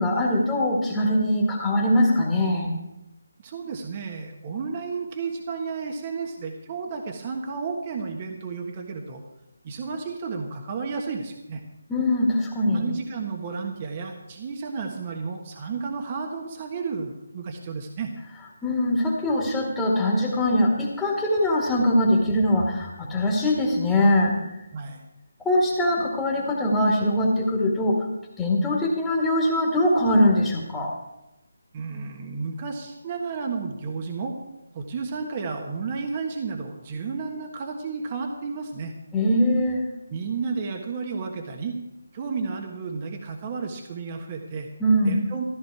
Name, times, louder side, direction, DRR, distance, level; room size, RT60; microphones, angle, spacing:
voice 1, 0.0-2.7 11.9-12.8 18.6-24.4 25.4-28.1 28.4-30.9 39.1-39.9 44.8-45.2, left 1 dB, 10° left, -4 dB, 1.9 m, -22 dB
voice 2, 3.4-9.2 9.6-11.6 12.7-18.1 24.7-25.0 31.7-34.4 34.7-38.9 40.1-41.8 42.1-44.7 45.0-45.4, right 5 dB, 30° right, 3 dB, 1.4 m, -32 dB
14.5 x 12.5 x 4.7 m, 0.94 s
figure-of-eight pair, 155°, 0 cm